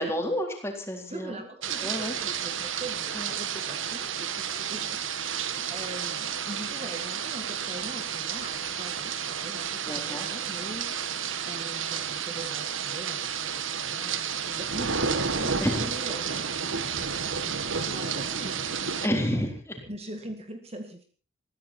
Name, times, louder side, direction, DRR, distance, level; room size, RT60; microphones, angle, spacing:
voice 1, 0.0-1.5 1.8-2.2 3.1-3.3 9.9-10.3 15.6-15.9 19.0-19.8, equal, 15° left, 2 dB, 3.8 m, -30 dB
voice 2, 1.1-11.2 11.5-13.6 13.8-16.8 17.4-19.3 19.8-21.0, right 1 dB, 30° right, 5 dB, 1.9 m, -42 dB
sound 1, 1.6-19.1, right 7 dB, 80° right, 1.7 m, -31 dB
21.5 x 15.0 x 4.5 m, 0.38 s
head